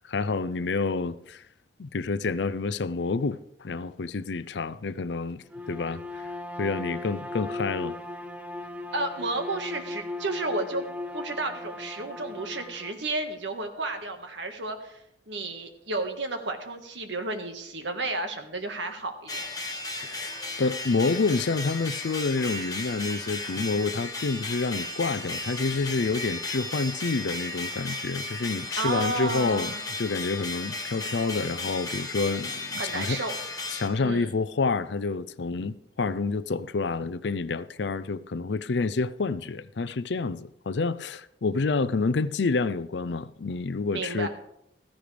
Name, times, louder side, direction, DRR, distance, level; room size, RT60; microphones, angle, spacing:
voice 1, 0.1-1.4 1.8-6.0 6.6-7.9 20.0-20.3 20.6-33.2 33.7-44.3, left 4 dB, 70° left, 0.5 m, -28 dB
Bowed string instrument, 5.4-13.0, left 2 dB, 10° right, 0.6 m, -37 dB
voice 2, 8.9-10.8 11.1-15.0 15.3-19.5 28.8-29.8 32.8-33.4 34.0-34.3 43.9-44.3, right 2 dB, 85° right, 1.6 m, -32 dB
sound 1, 19.3-33.9, left 2 dB, 20° left, 1.6 m, -35 dB
15.5 x 14.5 x 3.4 m
head